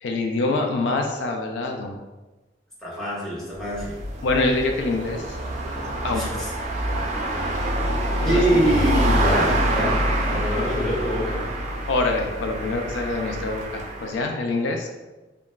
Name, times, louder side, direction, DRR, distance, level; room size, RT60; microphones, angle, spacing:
voice 1, 0.0-2.0 4.2-5.4 6.0-6.4 7.0-8.6 11.9-14.9, left 2 dB, 70° left, 3 dB, 0.3 m, -26 dB
voice 2, 2.8-4.0 6.1-6.5 8.2-11.5, right 1 dB, ahead, -8 dB, 1.0 m, -25 dB
sound 1, 3.5-14.2, right 1 dB, 40° right, 0.4 m, -26 dB
3.8 x 2.1 x 2.3 m, 1.1 s
head